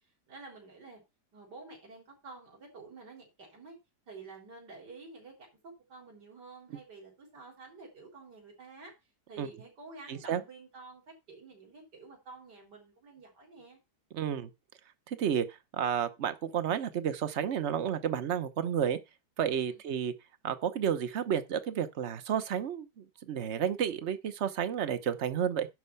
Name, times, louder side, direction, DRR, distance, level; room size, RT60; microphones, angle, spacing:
voice 1, 0.3-1.0 1.3-3.8 4.1-8.9 9.3-13.8 19.6-19.8, right 3 dB, 80° right, 4.4 m, -50 dB
voice 2, 10.1-10.4 14.1-14.5 15.1-19.0 19.4-20.1 20.4-25.7, right 8 dB, 50° right, 1.1 m, -31 dB
11.0 x 4.3 x 6.9 m
omnidirectional pair, 1.8 m